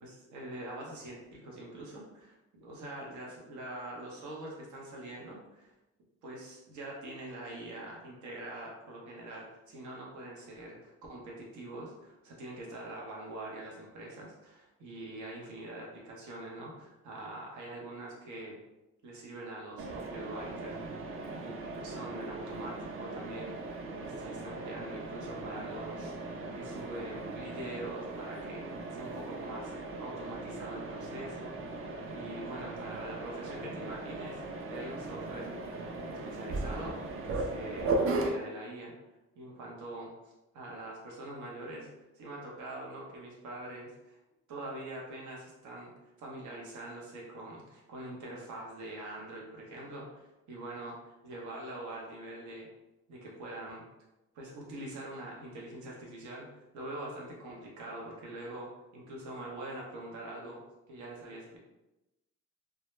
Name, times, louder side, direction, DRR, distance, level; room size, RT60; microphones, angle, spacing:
voice 1, 0.0-5.7 6.2-18.6 19.0-20.8 21.3-23.6 24.0-28.6 28.9-31.8 32.1-34.4 34.7-35.5 35.8-38.9 39.4-41.9 42.1-44.2 44.5-45.9 46.2-52.7 53.1-53.8 54.3-56.5 56.7-60.6 60.9-61.6, right 1 dB, 75° right, -3 dB, 0.8 m, -44 dB
Mechanisms, 19.8-38.3, right 2 dB, 45° right, 0.4 m, -38 dB
2.2 x 2.0 x 3.0 m, 0.98 s
cardioid pair, 90°, 30 cm